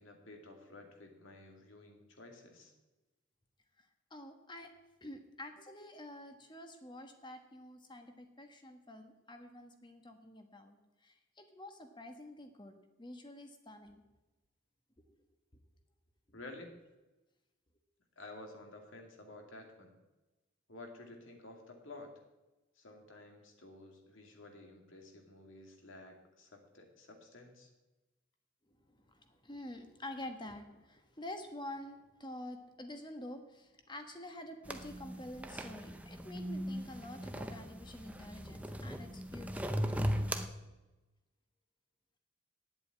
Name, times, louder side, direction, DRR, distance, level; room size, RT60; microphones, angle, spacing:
voice 1, 0.0-2.7 16.3-16.7 18.2-19.9 20.7-22.1 22.8-27.7, left 2 dB, 65° left, 3 dB, 2.3 m, -52 dB
voice 2, 3.8-4.7 5.0-10.8 11.0-12.7 13.0-14.0 28.7-39.7, left 1 dB, 20° left, 6 dB, 1.2 m, -48 dB
sound 1, 34.6-40.5, equal, 5° right, 0.6 m, -38 dB
9.5 x 8.0 x 8.9 m, 1.1 s
head